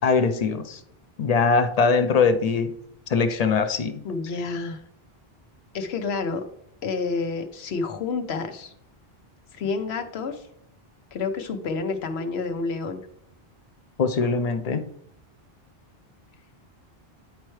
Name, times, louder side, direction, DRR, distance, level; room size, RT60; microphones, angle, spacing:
voice 1, 0.0-0.8 1.2-2.7 3.1-4.0 14.0-14.8, left 5 dB, 50° left, 10 dB, 0.5 m, -22 dB
voice 2, 4.0-4.8 5.7-6.5 6.8-8.7 9.6-10.4 11.1-13.1, left 4 dB, 90° left, 7 dB, 1.0 m, -29 dB
10.0 x 4.4 x 3.1 m, 0.71 s
omnidirectional pair, 1.0 m